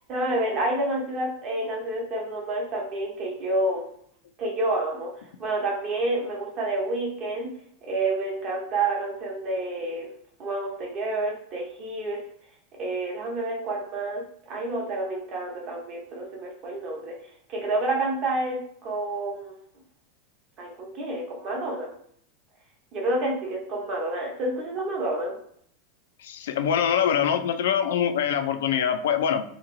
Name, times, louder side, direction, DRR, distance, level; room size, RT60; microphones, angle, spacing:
voice 1, 0.1-3.8 4.4-5.1 5.4-7.5 7.8-10.1 10.4-12.2 12.8-17.1 17.5-19.6 20.6-21.9 22.9-25.4, right 2 dB, 30° right, -1 dB, 0.8 m, -29 dB
voice 2, 26.2-29.4, left 8 dB, 90° left, 7 dB, 0.4 m, -24 dB
2.9 x 2.8 x 2.6 m, 0.64 s
supercardioid pair, 175°, 0 cm